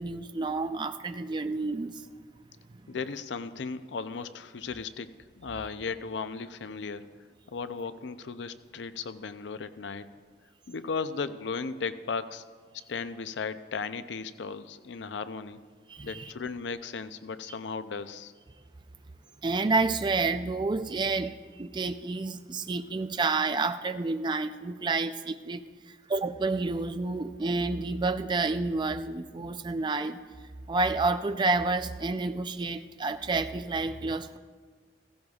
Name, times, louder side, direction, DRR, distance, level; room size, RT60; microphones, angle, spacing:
voice 1, 0.0-2.1 15.9-16.3 19.4-30.2 30.7-34.4, right 3 dB, 25° right, 10 dB, 0.4 m, -29 dB
voice 2, 2.9-5.1 5.4-7.1 7.5-10.1 10.7-12.4 12.9-15.6 16.0-18.3, left 5 dB, 80° left, 12 dB, 0.5 m, -36 dB
15.5 x 15.5 x 2.4 m, 1.5 s
head